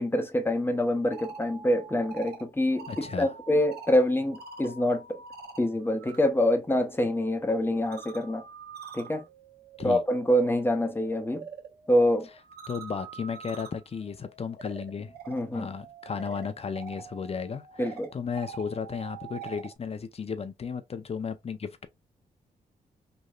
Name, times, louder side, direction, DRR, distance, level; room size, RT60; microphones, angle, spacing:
voice 1, 0.0-5.2 5.6-8.4 8.9-9.2 9.8-11.5 11.9-12.3 15.3-15.7 17.8-18.1, left 1 dB, 15° left, 0.8 m, -26 dB
sound 1, 0.9-6.2 6.5-19.8, right 6 dB, 80° right, 1.0 m, -46 dB
voice 2, 2.9-3.3 9.8-10.0 12.7-15.1 15.5-21.9, left 6 dB, 40° left, 0.6 m, -34 dB
3.1 x 2.7 x 2.3 m
cardioid pair, 70°, 16 cm